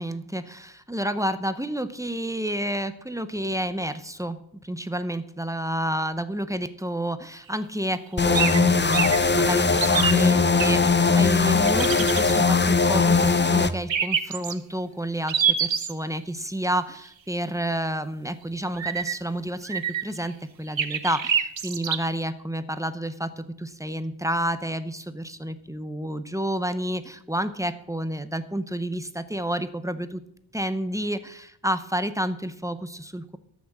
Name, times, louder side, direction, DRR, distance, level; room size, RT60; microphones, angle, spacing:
voice 1, 0.0-30.2 30.5-33.4, right 1 dB, 5° right, 11 dB, 0.8 m, -30 dB
sound 1, 8.2-13.7, left 4 dB, 25° left, 0.6 m, -20 dB
sound 2, 8.3-8.6 8.9-9.2 9.7-10.7 11.6-12.3 13.9-14.5 15.3-15.9 18.7-19.1 19.6-20.2 20.8-22.0, right 7 dB, 70° right, 0.9 m, -25 dB
13.0 x 6.2 x 7.4 m, 0.74 s
wide cardioid pair, 80°, 48 cm